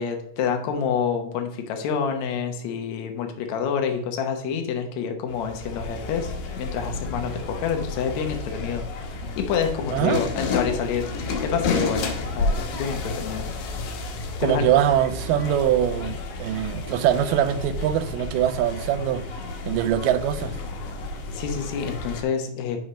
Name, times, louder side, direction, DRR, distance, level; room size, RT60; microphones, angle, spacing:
voice 1, 0.0-13.5 14.4-14.7 21.3-22.8, left 7 dB, 70° left, 2.1 m, -28 dB
sound 1, 5.3-22.2, left 3 dB, 85° left, 2.7 m, -31 dB
voice 2, 9.9-10.2 14.4-19.3 19.7-20.5, right 11 dB, 85° right, 2.1 m, -23 dB
5.6 x 5.0 x 5.0 m
omnidirectional pair, 3.8 m